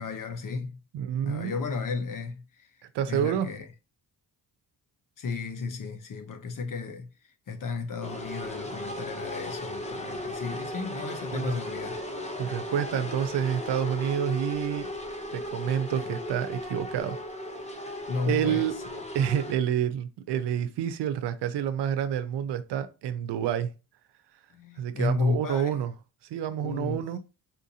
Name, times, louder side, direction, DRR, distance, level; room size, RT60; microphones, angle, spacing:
voice 1, 0.0-0.8 1.2-2.7 3.1-3.7 5.2-7.1 7.5-12.0 15.9-16.1 18.1-19.0 24.5-25.8 26.6-27.0, left 4 dB, 50° left, 0.9 m, -33 dB
voice 2, 0.9-1.6 2.9-3.5 11.3-11.6 12.4-14.9 15.3-17.2 18.3-18.7 19.1-23.7 24.8-25.9 26.3-27.2, right 9 dB, 80° right, 0.6 m, -28 dB
sound 1, 8.0-19.5, left 1 dB, 15° left, 0.8 m, -36 dB
4.2 x 2.6 x 2.7 m
cardioid pair, 80°, 41 cm